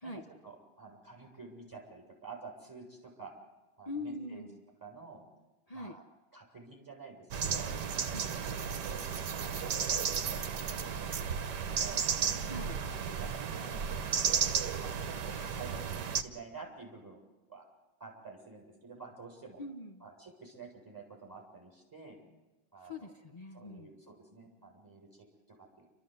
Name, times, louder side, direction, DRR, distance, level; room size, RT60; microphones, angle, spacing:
voice 1, 0.0-3.3 3.8-4.5 4.8-5.2 5.7-6.0 6.3-9.0 9.4-12.0 13.0-14.1 14.8-17.2 17.5-17.6 18.0-19.6 20.0-22.2 22.7-23.1 23.5-25.9, right 4 dB, 10° right, -1 dB, 7.3 m, -50 dB
voice 2, 3.9-4.6 5.7-6.0 8.1-8.3 12.4-12.8 19.6-20.0 22.9-23.9, left 2 dB, 40° left, 4 dB, 0.5 m, -42 dB
sound 1, 7.3-16.2, right 7 dB, 60° right, 1.6 m, -33 dB
30.0 x 14.0 x 8.1 m, 1.1 s
omnidirectional pair, 2.1 m